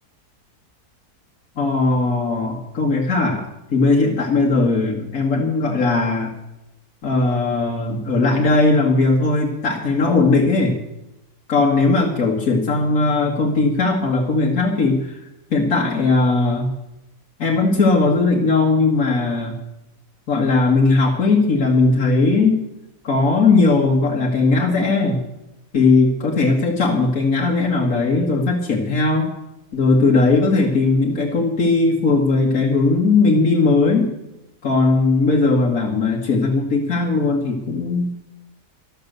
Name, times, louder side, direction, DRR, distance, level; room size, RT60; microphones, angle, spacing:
voice 1, 1.6-3.4 3.7-6.3 7.0-10.8 11.5-15.2 15.5-16.7 17.4-19.6 20.3-22.6 23.0-25.2 25.7-29.3 29.7-34.1 34.6-38.1, left 3 dB, 60° left, -2 dB, 2.1 m, -18 dB
12.5 x 12.5 x 6.7 m, 0.91 s
omnidirectional pair, 1.7 m